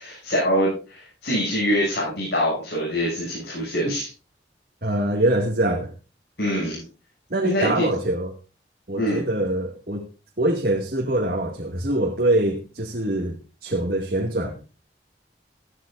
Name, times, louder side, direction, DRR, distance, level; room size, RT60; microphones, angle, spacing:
voice 1, 0.0-4.1 6.4-6.8 7.4-7.9 8.9-9.2, equal, 70° left, -5 dB, 7.9 m, -24 dB
voice 2, 4.8-5.9 7.3-8.3 8.9-10.1 10.4-14.5, right 1 dB, 55° right, 0 dB, 2.1 m, -24 dB
16.0 x 13.5 x 2.6 m, 0.32 s
head